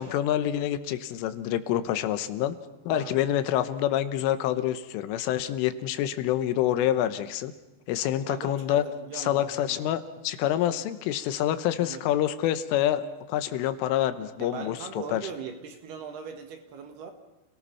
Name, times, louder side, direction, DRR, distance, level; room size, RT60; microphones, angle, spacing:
voice 1, 0.0-2.6 2.9-7.5 7.9-8.8 9.1-14.8 15.1-15.2, left 12 dB, 85° left, 11 dB, 3.5 m, -27 dB
voice 2, 2.9-3.3 8.3-9.8 11.8-12.0 14.4-17.1, right 6 dB, 65° right, 5 dB, 3.2 m, -40 dB
29.0 x 18.0 x 5.7 m, 1.1 s
omnidirectional pair, 5.7 m